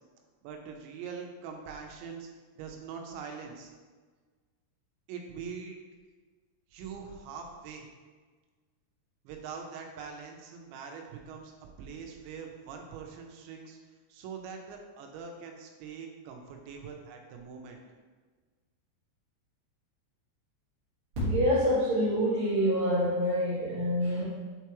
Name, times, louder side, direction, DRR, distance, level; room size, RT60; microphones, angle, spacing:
voice 1, 0.4-2.3 2.5-3.7 5.1-5.8 6.7-7.9 9.2-11.5 11.8-13.8 14.1-17.8, right 6 dB, 85° right, 2 dB, 3.0 m, -43 dB
voice 2, 21.2-24.3, equal, 55° right, -11 dB, 1.5 m, -26 dB
7.6 x 4.6 x 3.0 m, 1.4 s
omnidirectional pair, 5.1 m